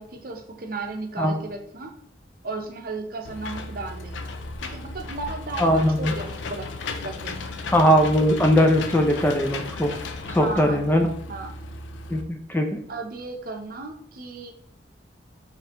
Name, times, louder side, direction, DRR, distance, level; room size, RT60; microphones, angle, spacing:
voice 1, 0.0-2.0 2.4-4.3 4.6-7.7 10.3-11.0 11.3-11.5 12.9-14.5, right 3 dB, 50° right, 3 dB, 0.7 m, -35 dB
Engine / Mechanisms, 3.2-12.2, left 3 dB, 85° left, 0.4 m, -35 dB
voice 2, 5.6-6.1 7.7-9.9 10.3-11.1 12.1-12.8, equal, 10° left, 4 dB, 0.3 m, -20 dB
5.0 x 3.2 x 2.9 m, 0.64 s
head